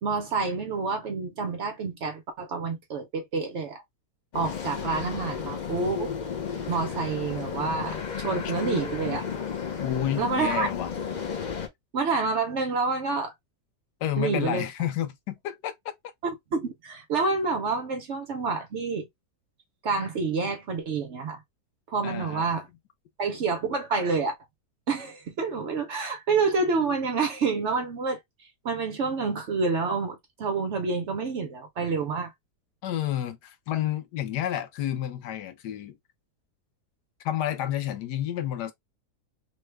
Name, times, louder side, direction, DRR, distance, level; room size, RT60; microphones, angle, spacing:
voice 1, 0.0-3.8 4.3-6.1 6.7-9.3 10.2-10.7 11.9-13.3 14.2-14.7 16.2-19.1 19.8-21.4 21.9-22.7 23.2-24.3 24.9-28.2 28.6-32.3, right 4 dB, 60° right, 0.8 m, -28 dB
sound 1, 4.3-11.7, left 7 dB, 65° left, 0.4 m, -33 dB
voice 2, 9.8-10.9 14.0-15.7 22.0-22.5 32.8-36.0 37.2-38.7, left 11 dB, 90° left, 1.2 m, -30 dB
3.2 x 2.1 x 3.2 m
omnidirectional pair, 1.7 m